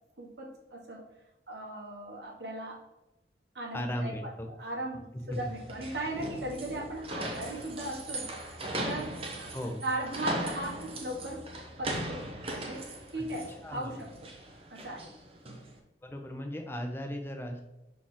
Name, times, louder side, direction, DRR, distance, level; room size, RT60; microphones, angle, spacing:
voice 1, 0.2-1.0 1.5-2.8 3.5-4.3 4.6-8.3 8.8-9.5 9.8-11.5 11.8-14.3 14.7-15.1, right 1 dB, 70° right, 0 dB, 1.4 m, -38 dB
voice 2, 3.7-4.5 5.3-5.5 9.5-9.8 13.2-13.3 13.6-14.0 16.0-17.6, equal, 15° left, 3 dB, 0.7 m, -36 dB
sound 1, 5.3-15.7, right 1 dB, 30° right, 0.9 m, -39 dB
6.2 x 4.2 x 3.7 m, 0.94 s
head